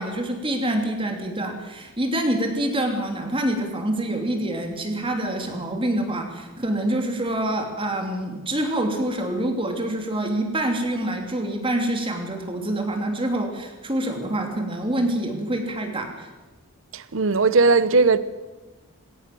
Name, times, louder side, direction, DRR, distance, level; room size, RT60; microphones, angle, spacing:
voice 1, 0.0-16.3, right 1 dB, 25° right, 2.9 m, -26 dB
voice 2, 16.9-18.2, right 3 dB, 60° right, 0.9 m, -18 dB
20.5 x 17.5 x 7.7 m
head